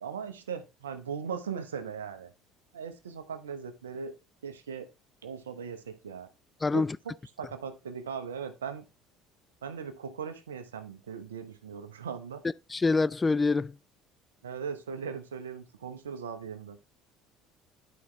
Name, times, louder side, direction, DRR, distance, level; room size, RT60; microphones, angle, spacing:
voice 1, 0.0-2.3 2.7-4.1 4.4-4.9 5.2-6.3 6.7-8.8 9.6-12.4 14.4-16.8, right 6 dB, 85° right, 0.8 m, -39 dB
voice 2, 6.6-7.0 12.7-13.8, left 3 dB, 20° left, 0.3 m, -25 dB
11.0 x 5.0 x 3.1 m
hypercardioid pair, 65°, 0 cm